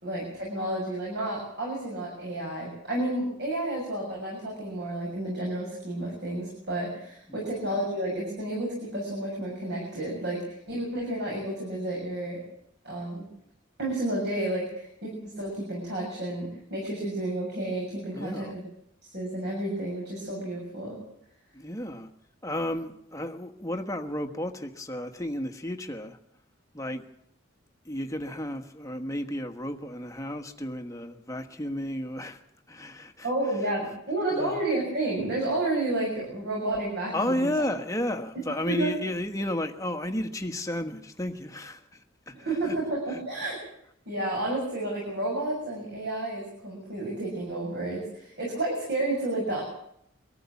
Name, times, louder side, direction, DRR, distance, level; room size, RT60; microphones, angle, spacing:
voice 1, 0.0-12.4 12.8-13.2 13.8-18.6 19.0-21.0 33.2-37.5 38.6-38.9 42.3-43.6 44.0-49.6, right 1 dB, 55° right, -3 dB, 6.8 m, -31 dB
voice 2, 18.1-18.6 21.5-22.1 22.4-26.2 26.7-27.1 27.8-32.4 32.7-33.3 34.3-34.6 37.1-42.8 43.1-43.2, left 1 dB, 15° left, 6 dB, 1.3 m, -33 dB
23.0 x 14.0 x 8.4 m, 0.73 s
head